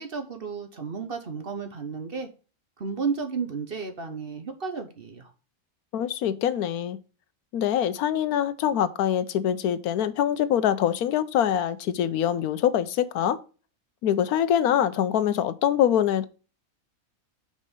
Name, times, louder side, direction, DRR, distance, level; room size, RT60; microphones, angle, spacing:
voice 1, 0.0-2.3 2.8-5.3, right 5 dB, 45° right, 1.1 m, -33 dB
voice 2, 5.9-7.0 7.5-13.4 14.0-16.3, left 10 dB, 85° left, 1.2 m, -24 dB
5.5 x 5.2 x 6.6 m
omnidirectional pair, 1.6 m